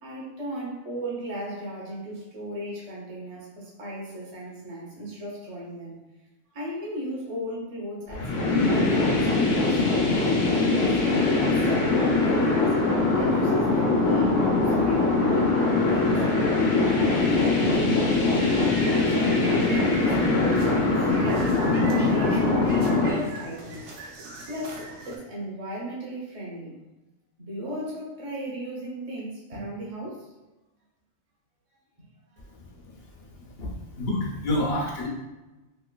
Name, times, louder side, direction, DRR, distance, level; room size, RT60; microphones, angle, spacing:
voice 1, 0.0-6.0 6.5-9.3 9.6-11.0 11.3-12.8 13.1-18.7 19.3-23.9 24.5-26.8 27.4-30.3, equal, 35° right, -4 dB, 0.7 m, -36 dB
sound 1, 8.1-23.1, left 3 dB, 85° left, 1.1 m, -22 dB
sound 2, 18.4-25.2, right 2 dB, 70° right, 0.8 m, -40 dB
voice 2, 33.6-35.1, left 1 dB, 60° left, -2 dB, 0.9 m, -28 dB
3.1 x 2.9 x 2.2 m, 1.1 s
omnidirectional pair, 1.3 m